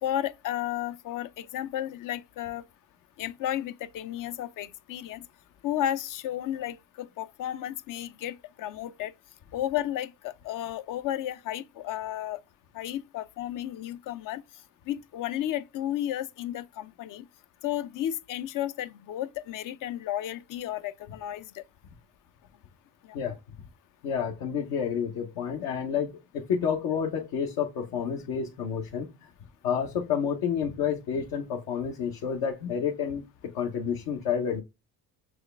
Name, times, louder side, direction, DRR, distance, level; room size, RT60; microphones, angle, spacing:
voice 1, 0.0-2.6 3.2-5.3 5.6-9.1 9.5-12.4 12.7-14.4 14.9-17.3 17.6-21.6 23.0-23.2, left 12 dB, 60° left, 0.5 m, -33 dB
voice 2, 24.0-29.3 29.6-33.2 33.5-34.6, left 7 dB, 75° left, 1.0 m, -29 dB
6.2 x 2.4 x 3.3 m
supercardioid pair, 80°, 36 cm